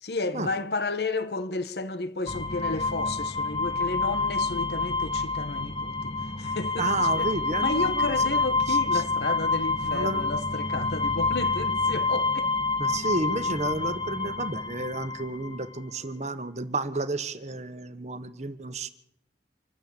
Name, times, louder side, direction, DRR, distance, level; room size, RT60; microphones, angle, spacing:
voice 1, 0.0-7.3 7.6-12.5, left 3 dB, 65° left, 1.2 m, -32 dB
sound 1, 2.3-15.7, left 3 dB, 35° left, 1.1 m, -28 dB
voice 2, 6.8-8.2 8.7-9.0 9.5-10.2 12.8-18.9, right 2 dB, 40° right, 1.3 m, -31 dB
26.0 x 13.0 x 8.7 m
head